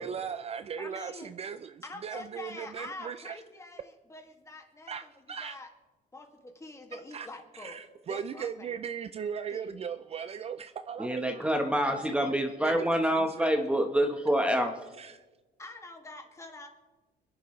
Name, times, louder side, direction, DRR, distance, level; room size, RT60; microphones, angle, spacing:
voice 1, 0.0-3.4 4.9-5.5 7.1-7.3 7.5-11.4 12.0-12.3 12.6-13.5 15.0-15.2, right 7 dB, 35° right, 11 dB, 0.5 m, -38 dB
voice 2, 0.8-1.3 1.8-5.1 5.4-5.7 6.1-8.9 9.5-9.8 15.6-16.7, left 2 dB, 15° left, 3 dB, 2.1 m, -45 dB
voice 3, 11.0-14.7, equal, 5° right, 4 dB, 1.1 m, -27 dB
27.0 x 10.5 x 3.2 m, 1.2 s
cardioid pair, 110°, 17 cm